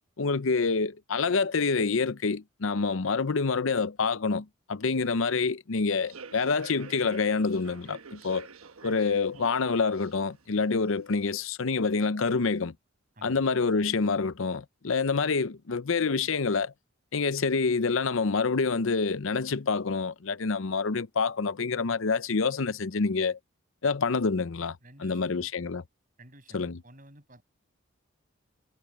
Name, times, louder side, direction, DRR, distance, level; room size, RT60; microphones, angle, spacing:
voice 1, 0.2-8.5 8.8-12.7 13.2-16.7 17.1-23.4 23.8-25.8 26.5-26.8, left 4 dB, 70° left, 0.7 m, -27 dB
Human voice / Subway metro underground, 5.9-11.4, right 4 dB, 85° right, 1.3 m, -48 dB
voice 2, 24.8-25.5 26.2-27.4, right 1 dB, 40° right, 7.3 m, -53 dB
head